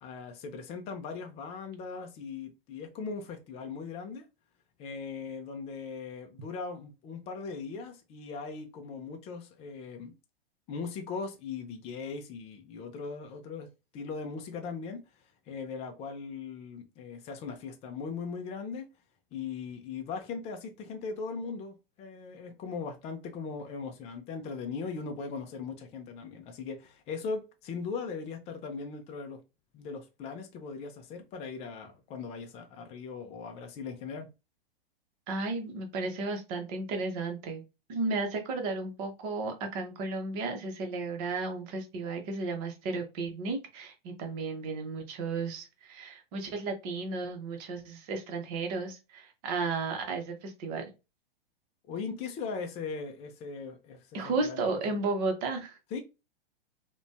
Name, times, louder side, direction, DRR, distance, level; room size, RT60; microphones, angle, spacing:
voice 1, 0.0-4.2 4.8-10.1 10.7-13.7 13.9-15.0 15.5-18.9 19.3-29.4 29.7-34.3 51.9-54.1 54.4-54.6 55.9-56.0, left 5 dB, 20° left, 0.4 m, -39 dB
voice 2, 35.3-37.6 37.9-50.9 54.1-55.8, right 3 dB, 40° right, 0.8 m, -33 dB
2.5 x 2.2 x 2.2 m
hypercardioid pair, 115°, 30 cm